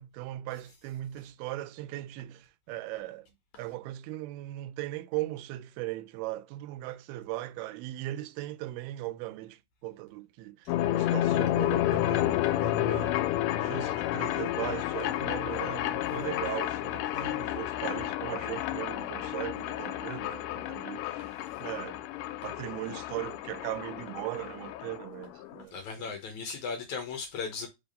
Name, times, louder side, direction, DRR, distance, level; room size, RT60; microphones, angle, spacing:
voice 1, 0.0-3.3 3.6-13.2 13.6-21.3 21.6-22.0 22.4-26.1, right 16 dB, 85° right, 2.5 m, -38 dB
sound 1, 10.7-25.6, left 13 dB, 85° left, 1.8 m, -31 dB
voice 2, 25.7-27.7, left 5 dB, 70° left, 1.9 m, -37 dB
5.5 x 3.5 x 5.1 m
omnidirectional pair, 4.4 m